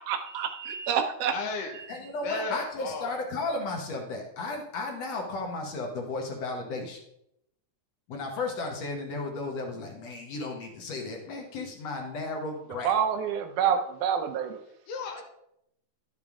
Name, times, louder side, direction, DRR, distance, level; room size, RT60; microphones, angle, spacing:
voice 1, 0.0-1.3 1.7-2.0 2.3-2.4 12.8-14.6, right 8 dB, 75° right, 6 dB, 2.1 m, -28 dB
voice 2, 1.3-1.8 2.2-3.2 14.9-15.2, left 4 dB, 75° left, 2 dB, 2.9 m, -34 dB
voice 3, 1.9-7.0 8.1-12.9, left 3 dB, 60° left, 2 dB, 1.9 m, -34 dB
11.5 x 7.0 x 3.6 m, 0.78 s
omnidirectional pair, 3.8 m